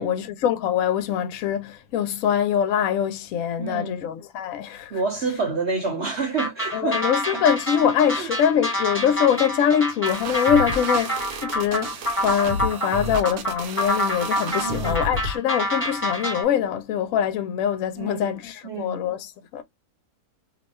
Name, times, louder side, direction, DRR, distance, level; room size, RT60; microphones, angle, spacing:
voice 1, 0.0-4.9 6.7-19.6, left 9 dB, 70° left, 0.9 m, -23 dB
voice 2, 3.6-4.0 4.9-7.0 7.3-7.4 8.1-8.3 14.6-15.0 18.0-18.4 18.6-19.1, right 4 dB, 55° right, 1.0 m, -29 dB
sound 1, 6.4-16.4, equal, 10° left, 1.1 m, -27 dB
sound 2, 10.1-15.4, equal, 75° right, 1.2 m, -32 dB
2.7 x 2.2 x 4.0 m
omnidirectional pair, 1.6 m